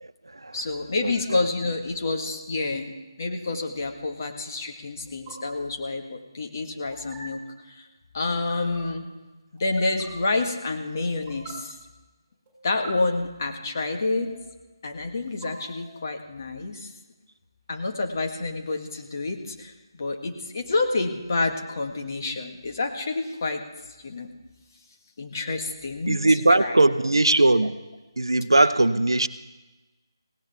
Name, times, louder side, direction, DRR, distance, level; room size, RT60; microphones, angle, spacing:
voice 1, 0.0-0.6 1.0-1.4 26.1-27.8 28.2-29.3, right 2 dB, 70° right, 11 dB, 0.7 m, -20 dB
voice 2, 0.5-2.9 3.2-7.9 8.1-9.0 9.5-11.8 12.6-14.3 14.8-16.9 17.7-23.6 24.0-24.3 25.2-26.2 26.6-26.8, left 3 dB, 40° left, 3 dB, 1.7 m, -28 dB
sound 1, 1.4-1.7 3.4-3.7 5.1-5.3 6.9-7.2 8.3-8.8 9.6-10.1 11.1-11.5 12.4-12.9 13.9-14.5 15.2-16.1, right 7 dB, 15° right, 7.0 m, -47 dB
18.5 x 17.5 x 3.6 m, 1.1 s
figure-of-eight pair, 155°, 2 cm